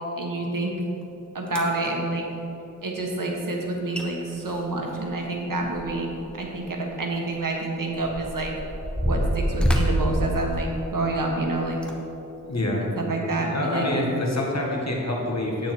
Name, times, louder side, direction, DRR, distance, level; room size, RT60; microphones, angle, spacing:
voice 1, 0.2-0.7 1.3-2.2 2.8-8.5 9.0-11.8 12.9-13.9, right 2 dB, 80° right, 0 dB, 1.5 m, -28 dB
sound 1, 1.0-1.1 1.5-1.9 3.6-3.7 3.9-4.1 4.4-6.2 6.5-6.7 7.4-11.1 11.7-11.9 12.6-12.7, equal, 5° left, 1.1 m, -27 dB
voice 2, 12.5-12.8 13.5-15.7, left 1 dB, 55° left, -2 dB, 1.9 m, -26 dB
9.4 x 8.6 x 4.6 m, 2.9 s
wide cardioid pair, 65°, 32 cm